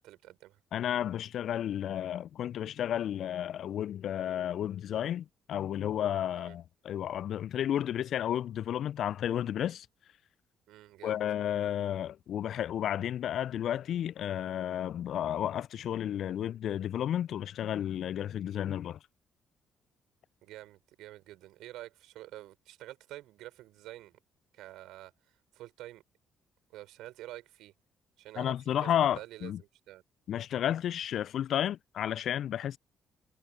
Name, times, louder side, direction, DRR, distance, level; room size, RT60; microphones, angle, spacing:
voice 1, 0.0-0.6 6.4-6.6 10.7-11.2 20.4-24.2 24.5-26.0 26.7-27.7 28.2-30.0, right 15 dB, 70° right, 4.5 m, -48 dB
voice 2, 0.7-9.9 11.0-19.0 28.4-29.6 30.3-32.8, left 10 dB, 60° left, 0.5 m, -32 dB
hypercardioid pair, 45°, 0 cm